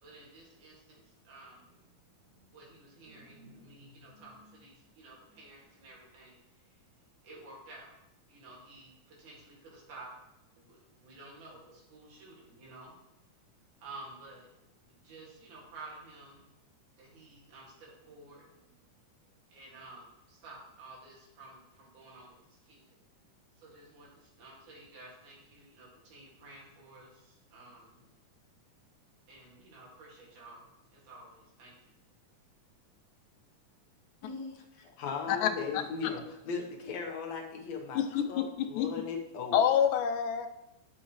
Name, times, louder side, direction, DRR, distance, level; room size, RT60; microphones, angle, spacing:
voice 1, 0.0-6.8 7.2-7.9 8.3-10.1 10.6-13.0 13.8-14.5 14.9-16.5 17.0-18.7 19.5-23.0 23.6-28.1 29.3-32.0, right 2 dB, 70° right, -4 dB, 3.5 m, -52 dB
voice 2, 34.2-39.6, left 5 dB, 65° left, 1 dB, 2.0 m, -38 dB
voice 3, 38.0-38.3 38.8-38.9 39.5-40.5, left 9 dB, 85° left, 8 dB, 2.2 m, -26 dB
10.5 x 6.4 x 3.1 m, 0.88 s
omnidirectional pair, 3.7 m